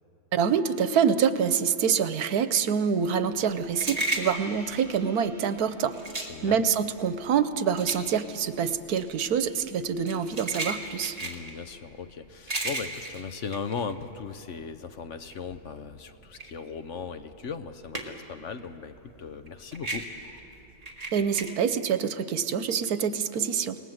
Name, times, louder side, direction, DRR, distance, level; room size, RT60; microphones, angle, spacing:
voice 1, 0.3-5.9 6.4-11.2 21.1-23.8, right 7 dB, 85° right, 12 dB, 1.4 m, -26 dB
sound 1, 3.0-14.6 15.0-18.4 18.7-21.5, right 2 dB, 25° right, 2.1 m, -35 dB
Gong, 4.0-9.0, equal, ahead, 7.7 m, -53 dB
voice 2, 6.2-6.6 11.2-20.1, left 6 dB, 55° left, 9 dB, 1.2 m, -38 dB
28.0 x 19.0 x 7.9 m, 2.9 s
omnidirectional pair, 1.6 m